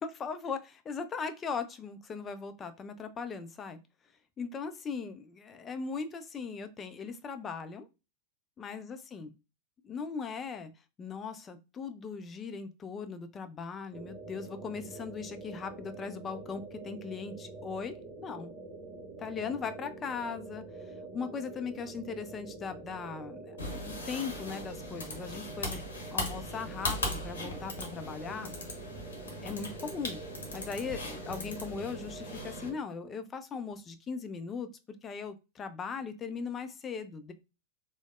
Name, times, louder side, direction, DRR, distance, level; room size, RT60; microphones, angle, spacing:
voice 1, 0.0-3.8 4.4-7.9 8.6-9.3 9.8-10.7 11.0-18.5 19.2-20.6 21.1-25.8 26.1-28.5 29.4-30.2 30.5-37.3, left 5 dB, 25° left, 9 dB, 0.4 m, -39 dB
sound 1, 13.9-32.8, right 3 dB, 50° right, 0.8 m, -46 dB
sound 2, 23.6-32.7, left 2 dB, 70° left, 0.8 m, -39 dB
3.2 x 2.0 x 2.4 m, 0.28 s
figure-of-eight pair, 90°, 0 cm